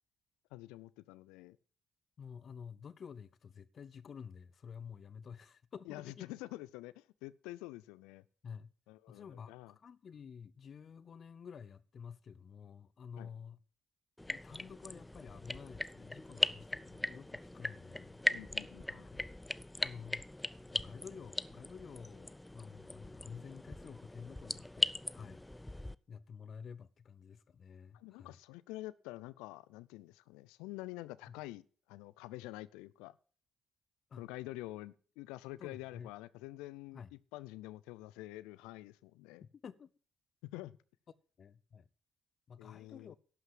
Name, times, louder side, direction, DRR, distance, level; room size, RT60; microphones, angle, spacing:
voice 1, 0.5-1.6 5.9-8.2 8.9-9.7 13.2-13.3 18.3-19.1 27.9-33.1 34.2-39.4 40.4-40.7 42.6-43.2, left 18 dB, 85° left, 0.4 m, -47 dB
voice 2, 2.2-6.3 8.4-8.7 9.1-13.6 14.3-18.2 18.9-19.3 19.8-20.2 20.7-28.4 31.3-31.4 34.1-34.2 35.6-36.1 36.9-37.1 39.4-39.9 41.4-41.9 42.5-43.2, left 6 dB, 55° left, 0.7 m, -51 dB
sound 1, 14.2-25.9, left 1 dB, 10° left, 0.4 m, -39 dB
11.5 x 5.8 x 7.4 m
hypercardioid pair, 50°, 0 cm